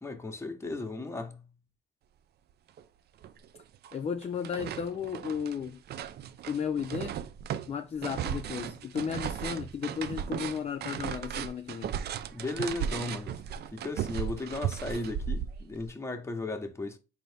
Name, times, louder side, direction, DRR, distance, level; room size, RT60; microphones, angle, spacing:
voice 1, 0.0-1.5 12.3-13.4 13.7-17.0, left 2 dB, 15° left, 1.0 m, -36 dB
sound 1, 2.8-2.9 3.2-4.0 4.2-15.9, right 9 dB, 55° right, 0.4 m, -36 dB
voice 2, 3.9-5.8 6.5-7.2 7.7-11.9, left 7 dB, 30° left, 0.5 m, -34 dB
3.9 x 2.8 x 3.4 m
cardioid pair, 90°, 20 cm